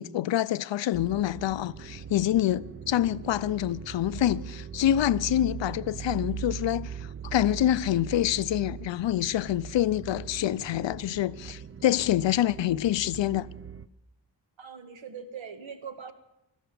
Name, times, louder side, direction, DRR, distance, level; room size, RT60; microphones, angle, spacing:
voice 1, 0.0-13.5, left 12 dB, 75° left, 0.6 m, -26 dB
sound 1, 0.9-13.9, right 8 dB, 30° right, 0.6 m, -40 dB
voice 2, 14.6-16.1, right 6 dB, 85° right, 1.7 m, -41 dB
16.0 x 12.5 x 6.9 m
wide cardioid pair, 115°, 45 cm